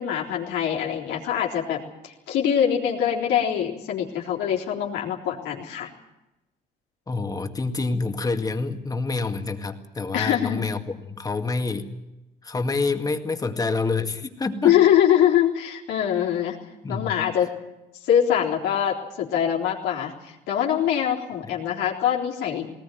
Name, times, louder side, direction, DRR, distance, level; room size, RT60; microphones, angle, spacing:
voice 1, 0.0-5.9 10.1-10.7 14.6-16.6 16.9-17.5 18.0-22.7, left 9 dB, 85° left, -1 dB, 3.8 m, -23 dB
voice 2, 7.1-10.8 11.2-11.9 12.4-14.8 16.2-16.3 16.8-17.1, left 3 dB, 20° left, 6 dB, 2.1 m, -27 dB
20.0 x 19.0 x 9.3 m, 0.96 s
cardioid pair, 110°, 17 cm